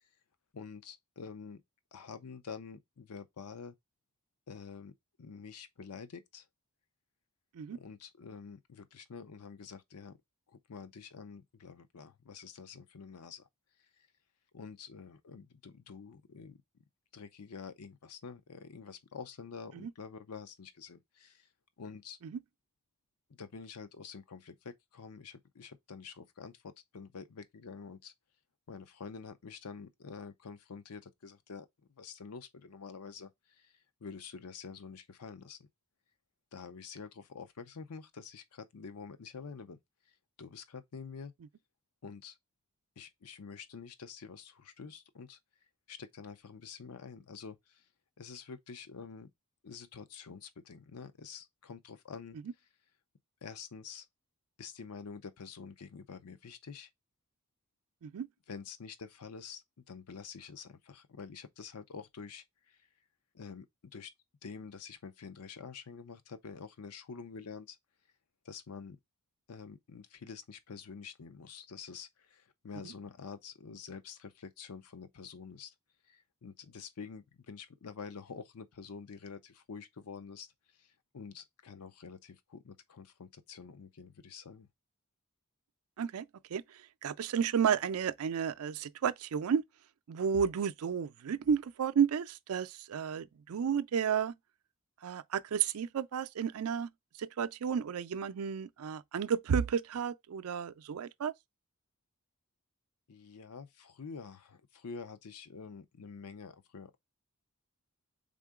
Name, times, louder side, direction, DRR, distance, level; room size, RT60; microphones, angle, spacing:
voice 1, 0.5-1.6 1.9-3.7 4.5-4.9 5.2-6.5 7.7-10.2 10.5-13.5 14.5-16.6 17.1-21.5 21.8-22.2 23.3-28.1 28.7-31.7 32.0-33.7 34.0-35.7 36.5-39.8 40.4-41.3 42.0-42.4 43.0-45.4 45.9-47.8 48.2-49.3 49.6-52.4 53.4-54.1 54.6-56.9 58.5-62.8 63.3-63.7 63.9-64.1 64.4-67.8 68.4-69.0 69.5-75.7 76.1-80.5 80.8-84.7 103.1-107.0, left 5 dB, 90° left, 0.6 m, -47 dB
voice 2, 87.0-89.6 90.1-94.3 95.0-96.9 97.2-101.3, right 7 dB, 75° right, 0.4 m, -32 dB
3.7 x 3.7 x 3.6 m
head